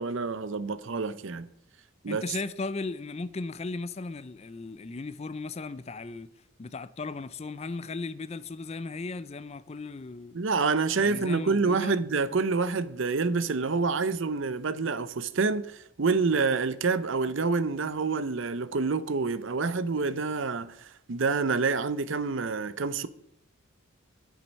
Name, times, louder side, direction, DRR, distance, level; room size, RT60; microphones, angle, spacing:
voice 1, 0.0-1.5 2.0-2.2 10.3-23.1, right 4 dB, 60° right, 0.6 m, -27 dB
voice 2, 2.1-6.3 6.6-10.4 11.0-12.0, left 3 dB, 30° left, 0.4 m, -36 dB
9.9 x 7.6 x 5.3 m
head